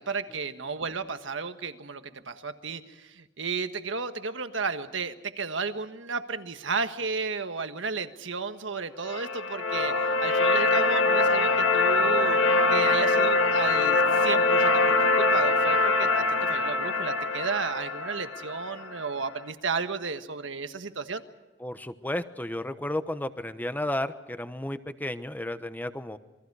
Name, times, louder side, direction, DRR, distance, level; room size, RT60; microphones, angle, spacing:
voice 1, 0.0-12.4 12.7-21.2, right 4 dB, 85° right, 8 dB, 1.5 m, -33 dB
sound 1, 9.0-19.1, left 3 dB, 80° left, 2.1 m, -23 dB
voice 2, 21.6-26.2, left 1 dB, 10° left, 11 dB, 1.0 m, -33 dB
28.0 x 22.5 x 4.8 m, 1.2 s
head